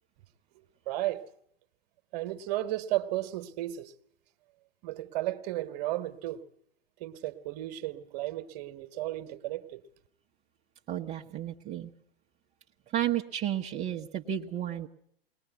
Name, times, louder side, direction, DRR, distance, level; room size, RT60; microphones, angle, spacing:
voice 1, 0.9-1.2 2.1-3.9 4.8-6.4 7.0-9.8, right 15 dB, 40° right, 1.5 m, -34 dB
voice 2, 10.9-11.9 12.9-14.9, right 11 dB, 20° right, 1.0 m, -32 dB
21.5 x 20.0 x 8.2 m
figure-of-eight pair, 105°, 31 cm